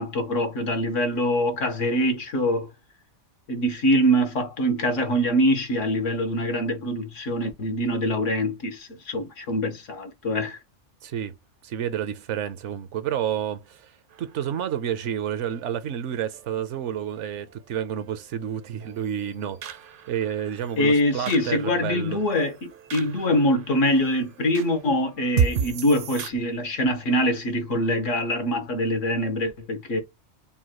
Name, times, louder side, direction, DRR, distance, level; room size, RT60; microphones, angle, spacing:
voice 1, 0.0-2.7 3.5-10.6 20.8-30.0, equal, 85° left, 1.5 m, -24 dB
voice 2, 11.0-11.3 11.6-13.9 14.2-19.8 20.1-22.2, right 9 dB, 80° right, 1.0 m, -30 dB
sound 1, 14.1-26.3, right 7 dB, 60° right, 0.6 m, -35 dB
5.5 x 2.2 x 3.0 m
omnidirectional pair, 1.2 m